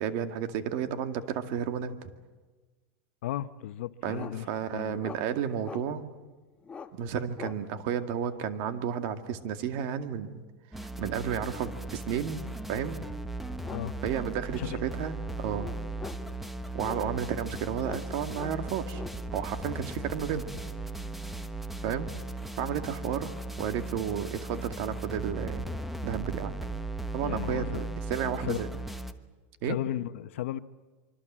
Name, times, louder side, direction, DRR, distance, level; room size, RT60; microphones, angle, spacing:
voice 1, 0.0-2.1 4.0-6.0 6.9-10.4 10.8-12.4 12.7-13.0 14.0-15.7 16.7-19.0 19.3-20.5 21.8-22.1 22.6-23.3 23.6-25.7 26.0-26.5 27.1-28.7 29.6-29.8, right 8 dB, 55° right, 2.2 m, -32 dB
voice 2, 3.2-5.0 13.7-14.0 14.6-14.8 27.2-27.9 28.4-28.7 29.6-30.6, left 12 dB, 90° left, 1.0 m, -35 dB
sound 1, 4.2-4.4 5.0-5.2 5.6-5.8 6.6-6.9 7.4-7.6 9.6-9.8 12.7-12.8 13.6-13.9 14.2-14.3 14.7-15.0 15.6-16.3 16.8-17.3 17.8-18.1 18.3-19.2, left 5 dB, 15° left, 1.4 m, -42 dB
sound 2, 10.7-29.1, right 2 dB, ahead, 1.1 m, -37 dB
25.0 x 25.0 x 7.5 m
supercardioid pair, 150°, 7 cm